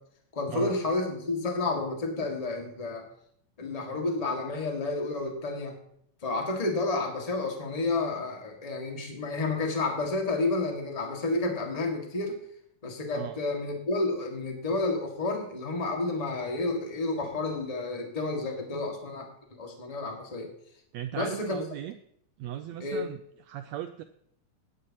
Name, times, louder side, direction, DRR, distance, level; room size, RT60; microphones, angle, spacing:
voice 1, 0.3-3.0 3.6-5.7 6.2-12.4 12.8-19.3 19.6-20.5 21.1-21.6 22.8-23.0, left 3 dB, 15° left, 1 dB, 1.3 m, -30 dB
voice 2, 20.9-21.9 22.4-23.2 23.5-24.0, right 12 dB, 80° right, 9 dB, 1.6 m, -37 dB
18.0 x 9.8 x 2.9 m, 0.68 s
omnidirectional pair, 3.6 m